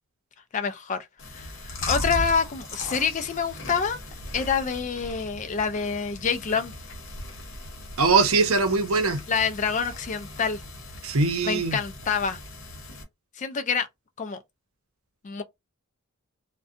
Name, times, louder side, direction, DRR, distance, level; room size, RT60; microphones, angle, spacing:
voice 1, 0.5-1.0 1.3-4.0 4.3-6.7 9.3-10.6 11.4-12.4 13.4-13.9 14.2-14.4 15.2-15.4, left 6 dB, 35° left, 0.3 m, -27 dB
Chewing mastication, 1.2-13.0, left 2 dB, 60° left, 0.9 m, -38 dB
voice 2, 8.0-9.2 11.0-11.8, right 4 dB, 75° right, 0.6 m, -21 dB
2.6 x 2.2 x 2.5 m
head